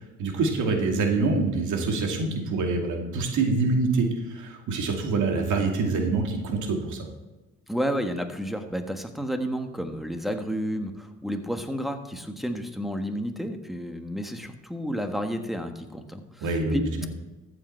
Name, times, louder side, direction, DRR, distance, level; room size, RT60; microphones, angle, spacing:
voice 1, 0.2-7.0 16.4-17.1, right 3 dB, 80° right, 2 dB, 2.4 m, -25 dB
voice 2, 7.7-16.8, equal, ahead, 6 dB, 1.5 m, -31 dB
14.0 x 7.9 x 4.5 m, 1.1 s
cardioid pair, 90°, 30 cm